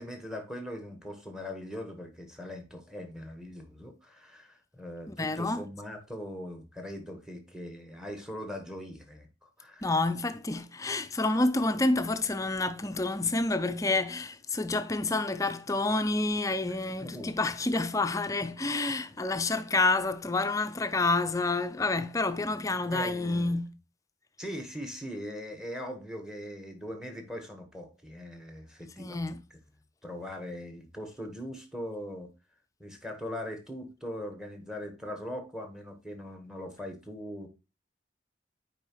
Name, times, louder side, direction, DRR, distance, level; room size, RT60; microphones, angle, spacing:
voice 1, 0.0-9.9 16.7-17.3 18.4-18.5 22.9-23.6 24.4-29.4 30.0-32.3 32.8-37.5, left 1 dB, 5° right, 1.1 m, -41 dB
voice 2, 5.1-5.6 9.8-23.7 29.0-29.4, left 2 dB, 15° left, 0.4 m, -28 dB
8.7 x 4.8 x 2.9 m
head